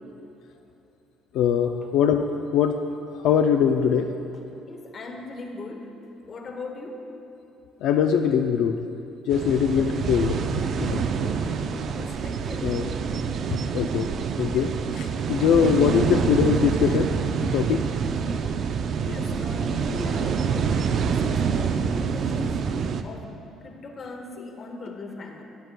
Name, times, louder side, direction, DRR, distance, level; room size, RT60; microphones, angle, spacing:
voice 1, 1.3-2.8 3.2-4.1 7.8-8.8 9.3-11.0 12.6-12.9 13.5-14.1 14.4-17.1 17.4-17.8, left 7 dB, 70° left, 5 dB, 0.3 m, -22 dB
voice 2, 4.3-6.0 6.3-7.1 9.7-9.9 11.2-12.8 19.0-22.6 23.0-23.3 23.6-25.4, left 2 dB, 30° left, 3 dB, 0.8 m, -39 dB
sound 1, 9.3-23.0, right 6 dB, 45° right, 0.3 m, -26 dB
12.5 x 9.5 x 2.2 m, 2.7 s
cardioid pair, 165°, 0 cm